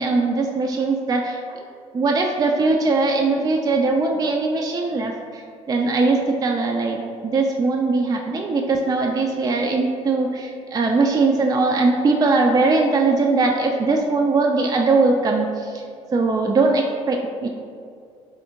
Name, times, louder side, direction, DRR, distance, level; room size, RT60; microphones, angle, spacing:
voice 1, 0.0-1.6 1.9-5.4 5.7-15.8 16.1-17.5, right 3 dB, 25° right, 1 dB, 0.3 m, -20 dB
4.1 x 2.6 x 2.8 m, 2.4 s
hypercardioid pair, 55°, 15 cm